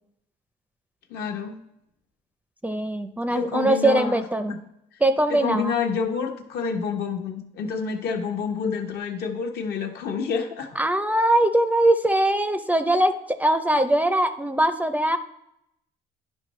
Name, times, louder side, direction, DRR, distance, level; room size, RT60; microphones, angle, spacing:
voice 1, 1.1-1.6 3.3-4.2 4.5-4.6 5.3-10.8, left 5 dB, 75° left, 3 dB, 1.1 m, -28 dB
voice 2, 2.6-4.6 5.0-5.7 10.8-15.2, right 1 dB, 10° right, 10 dB, 0.4 m, -21 dB
10.5 x 5.5 x 3.1 m, 0.81 s
cardioid pair, 110°, 17 cm